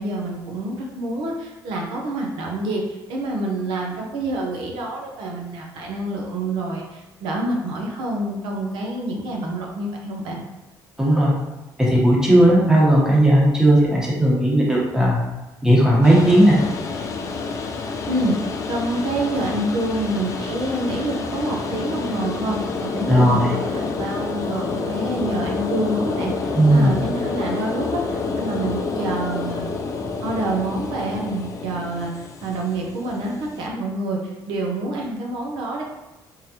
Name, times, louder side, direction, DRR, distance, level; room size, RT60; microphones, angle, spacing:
voice 1, 0.0-10.4 18.0-29.6 30.2-32.1 32.4-35.8, right 2 dB, 80° right, -1 dB, 0.7 m, -27 dB
voice 2, 11.0-11.3 11.8-15.2 15.6-16.6 23.1-23.5 26.5-27.0, right 1 dB, 5° right, -4 dB, 1.1 m, -16 dB
sound 1, 16.0-33.7, left 4 dB, 40° left, 0.5 m, -28 dB
3.6 x 3.3 x 2.8 m, 1.1 s
cardioid pair, 110°, 8 cm